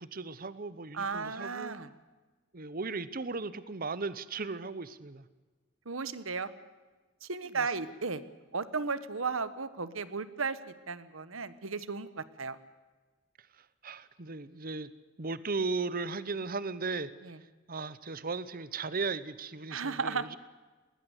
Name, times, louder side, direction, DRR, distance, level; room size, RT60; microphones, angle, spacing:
voice 1, 0.0-1.7 2.5-5.3 7.5-7.7 13.5-14.9 15.2-17.1 17.7-20.4, right 4 dB, 45° right, 16 dB, 1.0 m, -36 dB
voice 2, 0.9-1.9 5.8-6.5 7.2-8.2 8.5-10.6 10.9-12.6 17.2-17.4 19.7-20.3, right 4 dB, 85° right, 14 dB, 1.3 m, -35 dB
20.0 x 19.5 x 8.2 m, 1.3 s
head